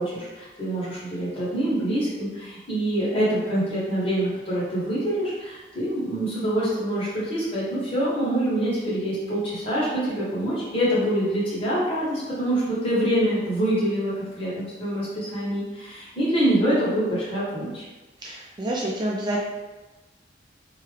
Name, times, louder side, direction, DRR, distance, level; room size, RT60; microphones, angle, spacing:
voice 1, 0.0-17.8, right 1 dB, 30° left, -8 dB, 1.2 m, -25 dB
voice 2, 18.2-19.4, right 1 dB, 25° right, -3 dB, 0.3 m, -28 dB
2.9 x 2.4 x 3.2 m, 1.2 s
head